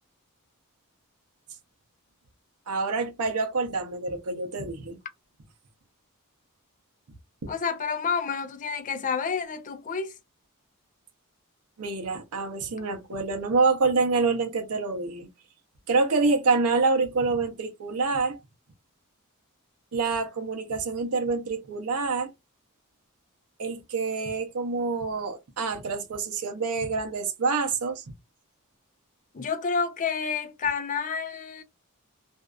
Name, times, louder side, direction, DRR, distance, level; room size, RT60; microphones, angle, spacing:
voice 1, 2.7-5.0 11.8-15.3 15.9-18.4 19.9-22.3 23.6-28.0, right 4 dB, 80° right, 0.7 m, -26 dB
voice 2, 7.5-10.1 29.3-31.6, left 5 dB, 35° left, 0.4 m, -29 dB
2.6 x 2.4 x 2.2 m
head